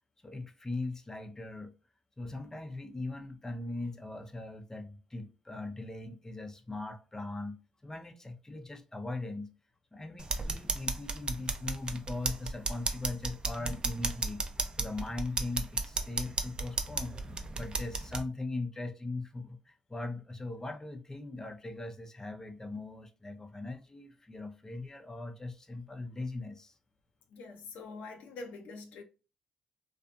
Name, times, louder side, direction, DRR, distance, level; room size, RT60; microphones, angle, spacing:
voice 1, 0.2-1.7 2.2-7.6 7.8-9.5 9.9-14.4 14.8-17.2 17.6-26.7, left 2 dB, 20° left, 0.5 m, -40 dB
sound 1, 10.2-18.2, right 3 dB, 35° right, 0.5 m, -34 dB
voice 2, 27.3-29.0, left 3 dB, 80° left, 0.6 m, -45 dB
2.6 x 2.4 x 2.3 m
hypercardioid pair, 50°, 3 cm